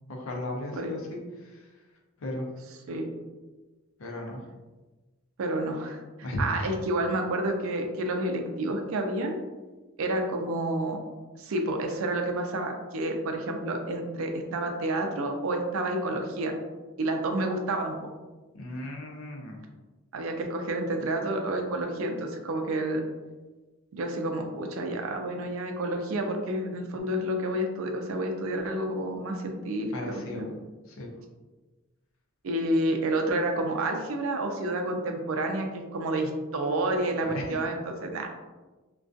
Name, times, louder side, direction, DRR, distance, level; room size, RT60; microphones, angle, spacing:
voice 1, 0.1-1.2 1.4-1.7 2.2-2.5 4.0-4.4 6.2-6.7 18.5-19.6 29.9-30.4 30.9-31.1 37.2-37.5, left 1 dB, 70° left, 0 dB, 0.5 m, -35 dB
voice 2, 5.4-9.4 10.0-11.0 11.4-16.5 17.0-18.0 20.1-23.1 23.9-30.5 32.4-38.3, right 1 dB, 75° right, 4 dB, 0.4 m, -29 dB
2.3 x 2.2 x 2.5 m, 1.2 s
head